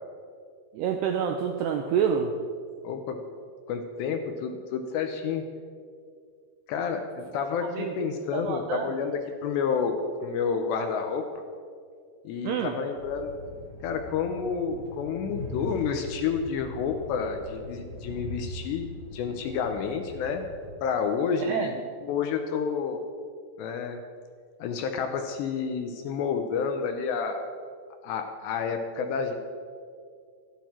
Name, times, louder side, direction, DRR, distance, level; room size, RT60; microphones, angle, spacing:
voice 1, 0.7-2.3 7.7-7.9 8.3-8.9 12.4-12.7 21.4-21.7, right 7 dB, 85° right, 4 dB, 2.4 m, -27 dB
voice 2, 2.8-3.2 3.7-5.5 6.7-11.2 12.2-13.4 13.8-20.5 20.8-23.0 23.6-24.0 24.6-27.4 28.0-29.4, left 6 dB, 75° left, 5 dB, 2.7 m, -30 dB
Train, 12.9-20.8, left 1 dB, 20° left, 2.4 m, -41 dB
26.0 x 9.4 x 4.5 m, 2.1 s
omnidirectional pair, 5.7 m